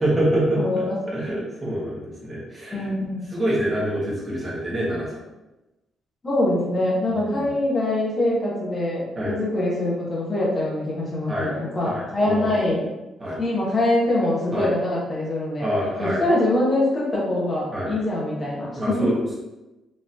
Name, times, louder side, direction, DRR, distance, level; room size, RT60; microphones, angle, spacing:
voice 1, 0.0-0.9 1.1-2.9 3.3-5.1 7.3-7.5 9.2-9.3 11.3-11.5 11.8-12.6 13.2-13.4 14.5-14.7 15.6-16.2 17.7-18.0 18.7-19.3, right 1 dB, 20° right, -6 dB, 1.1 m, -26 dB
voice 2, 0.6-1.0 2.7-3.3 6.2-12.8 13.4-15.7 16.0-19.1, left 1 dB, 20° left, -5 dB, 1.0 m, -24 dB
4.1 x 3.0 x 2.5 m, 1.0 s
cardioid pair, 175°, 0 cm